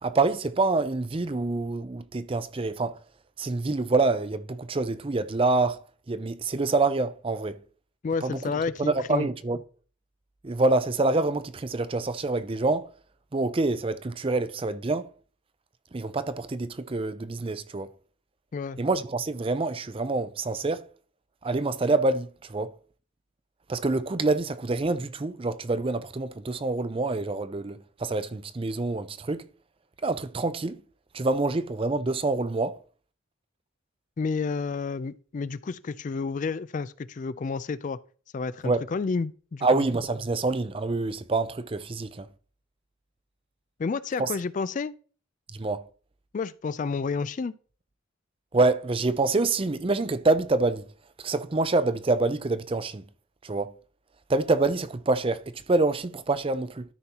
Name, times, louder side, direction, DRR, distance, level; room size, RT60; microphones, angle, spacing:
voice 1, 0.0-3.0 3.4-5.8 6.1-7.6 8.2-8.4 8.8-9.6 10.4-12.9 13.3-15.1 15.9-17.9 18.8-20.9 21.4-22.7 23.7-29.4 30.0-30.8 31.1-32.8 38.6-38.8 39.6-42.3 44.2-44.3 45.5-45.9 48.5-50.9 51.2-53.0 53.4-53.7 54.3-56.8, right 3 dB, 25° right, 0.5 m, -26 dB
voice 2, 8.0-9.3 18.5-18.8 34.2-38.0 38.3-39.8 43.8-44.9 46.3-47.5, left 4 dB, 40° left, 0.3 m, -30 dB
13.0 x 5.6 x 2.9 m
head